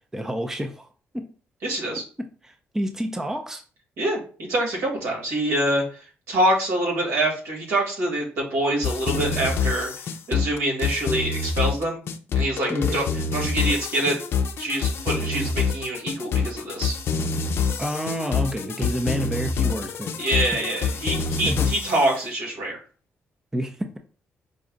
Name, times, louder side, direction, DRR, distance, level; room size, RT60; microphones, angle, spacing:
voice 1, 0.1-0.9 1.1-1.3 2.2-3.6 12.7-13.0 17.8-20.1 21.5-21.7 23.5-24.0, equal, 10° right, 5 dB, 0.6 m, -29 dB
voice 2, 1.6-2.0 4.0-4.2 4.5-5.8 6.3-9.9 10.3-12.0 12.4-13.1 13.3-14.2 14.6-16.9 20.2-22.8, right 1 dB, 85° right, -2 dB, 2.1 m, -25 dB
sound 1, 8.8-22.1, left 5 dB, 60° left, 0.5 m, -26 dB
5.2 x 2.3 x 3.8 m, 0.38 s
cardioid pair, 100°, 5 cm